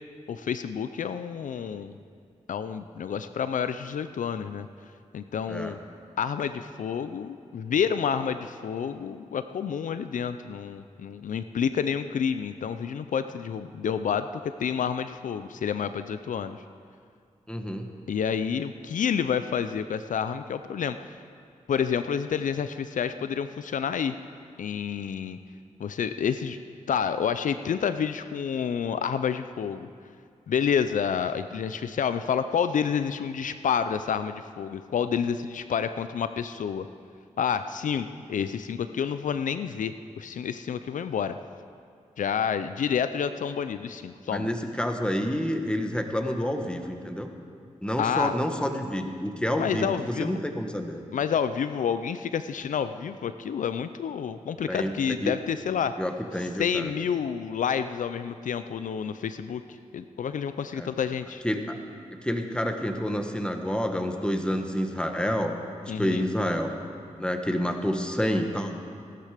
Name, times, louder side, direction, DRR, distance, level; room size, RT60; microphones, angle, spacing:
voice 1, 0.3-2.0 2.5-4.7 5.1-5.8 6.2-16.6 18.1-21.1 21.7-24.1 24.6-25.4 25.8-26.6 26.9-29.9 30.5-36.9 37.4-41.4 42.2-44.5 48.0-48.3 49.6-50.4 51.1-55.9 56.6-59.6 59.9-61.4 65.9-66.3, left 7 dB, 80° left, 11 dB, 0.5 m, -29 dB
voice 2, 17.5-17.9 44.3-47.3 47.8-51.0 54.7-54.9 55.2-55.3 56.0-56.9 60.8-60.9 61.4-61.8 62.2-65.5 65.8-66.7 67.2-68.8, equal, 5° left, 5 dB, 1.5 m, -28 dB
16.5 x 12.5 x 5.1 m, 2.2 s
cardioid pair, 55°, 13 cm